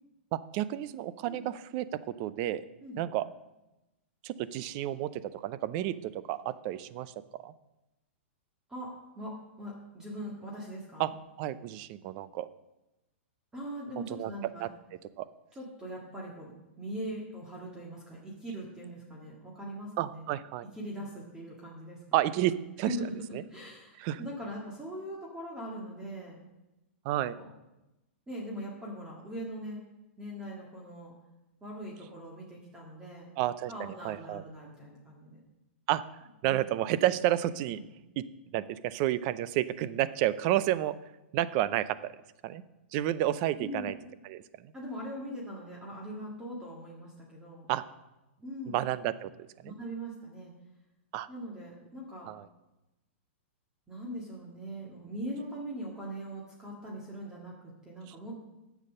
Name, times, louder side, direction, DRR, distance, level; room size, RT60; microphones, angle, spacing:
voice 1, 0.3-2.6 3.0-3.3 4.2-7.1 7.4-7.5 11.0-11.1 11.4-12.5 14.1-14.3 14.6-14.7 15.2-15.3 20.0-20.7 22.1-23.0 23.3-23.4 24.0-24.2 27.0-27.3 33.4-34.4 35.9-36.0 36.4-37.8 38.2-38.3 38.5-41.0 41.3-42.1 42.4-42.6 42.9-43.9 44.2-44.7 47.7-47.8 48.7-49.7 51.1-51.3 52.3-52.5, right 13 dB, 35° right, 16 dB, 0.5 m, -31 dB
voice 2, 8.7-11.1 13.5-14.7 15.5-20.3 20.7-22.2 22.8-23.1 23.5-26.4 27.1-27.5 28.3-29.8 30.2-31.1 31.6-33.3 33.7-35.4 37.7-37.8 43.6-43.9 44.7-47.7 48.4-48.8 49.6-50.5 51.3-52.3 53.9-58.4, equal, 10° right, -3 dB, 1.9 m, -41 dB
9.7 x 7.1 x 6.5 m, 0.99 s
hypercardioid pair, 155°, 7 cm